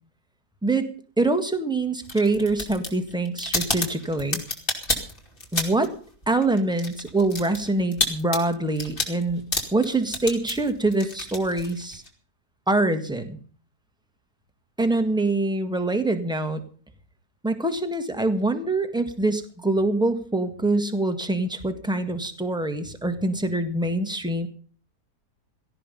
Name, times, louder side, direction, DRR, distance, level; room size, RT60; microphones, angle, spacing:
voice 1, 1.2-4.4 5.5-5.9 6.3-9.4 9.7-12.0 12.7-13.4 14.8-16.6 17.4-24.5, right 2 dB, 5° right, 7 dB, 1.5 m, -24 dB
sound 1, 2.0-6.0 6.2-12.1, left 2 dB, 30° left, 2.8 m, -30 dB
17.5 x 14.0 x 5.4 m, 0.43 s
omnidirectional pair, 1.8 m